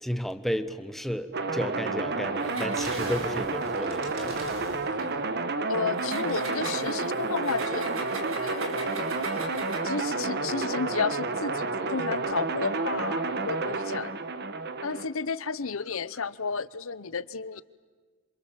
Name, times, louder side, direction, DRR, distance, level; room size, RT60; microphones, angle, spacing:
voice 1, 0.0-4.5, equal, ahead, 1.0 m, -33 dB
sound 1, 1.3-15.1, right 3 dB, 50° right, 1.3 m, -30 dB
Engine, 2.4-5.1 5.9-10.0, right 3 dB, 65° right, 4.6 m, -40 dB
voice 2, 5.7-7.9 8.4-9.2 9.8-14.2 14.8-17.6, left 5 dB, 70° left, 0.8 m, -32 dB
28.0 x 26.5 x 7.4 m
head